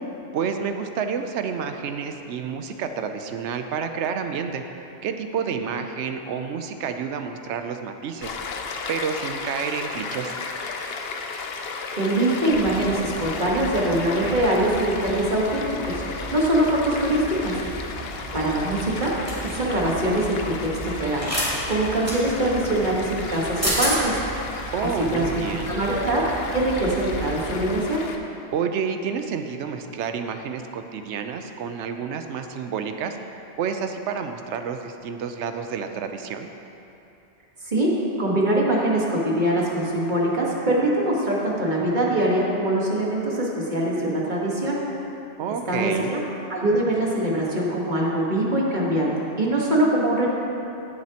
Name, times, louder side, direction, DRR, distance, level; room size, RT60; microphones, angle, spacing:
voice 1, 0.3-4.6 5.0-8.4 8.9-10.3 24.7-25.8 28.5-33.2 33.6-36.5 45.4-46.2, right 6 dB, 80° right, 7 dB, 0.9 m, -29 dB
Stream, 8.2-28.2, left 4 dB, 65° left, 0.9 m, -35 dB
voice 2, 12.0-16.0 16.3-17.6 18.3-19.1 19.4-21.3 21.7-24.2 24.8-26.2 26.5-28.0 37.6-44.8 45.7-46.2 46.5-49.1 49.4-50.3, right 1 dB, 40° right, -4 dB, 1.5 m, -23 dB
Fowl, 12.5-27.7, right 2 dB, 60° right, 2.0 m, -37 dB
sound 1, 19.3-19.5 21.2-21.5 22.1-22.2 23.3-23.4 23.6-23.9, equal, 10° right, 2.5 m, -25 dB
17.5 x 7.4 x 2.9 m, 2.9 s
omnidirectional pair, 1.2 m